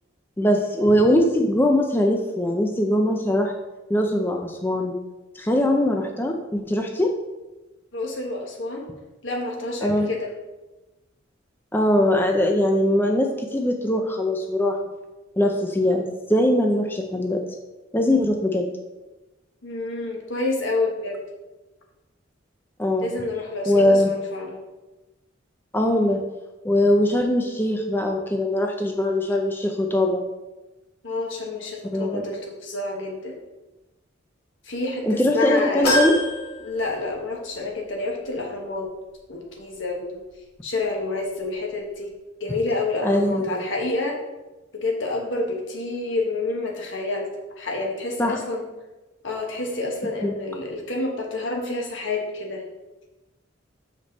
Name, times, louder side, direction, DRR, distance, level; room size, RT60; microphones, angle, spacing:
voice 1, 0.4-3.5 3.9-4.9 5.3-7.1 9.8-10.1 11.7-14.8 15.4-17.4 17.9-18.7 22.8-23.1 23.7-24.1 25.7-26.2 26.6-30.2 31.9-32.2 35.0-36.2 43.0-43.5 48.2-48.4 50.2-50.3, left 1 dB, 10° left, 2 dB, 0.5 m, -21 dB
voice 2, 7.9-8.9 9.2-10.3 19.6-21.2 23.0-24.6 31.0-33.4 34.6-35.9 36.6-38.9 39.3-40.2 40.6-42.1 42.4-44.2 44.7-47.3 47.6-48.6 49.2-52.6, left 2 dB, 70° left, 0 dB, 1.3 m, -28 dB
sound 1, 35.8-37.5 37.9-38.0 39.2-39.3, left 1 dB, 55° left, 2.4 m, -26 dB
6.9 x 5.1 x 4.0 m, 1.1 s
head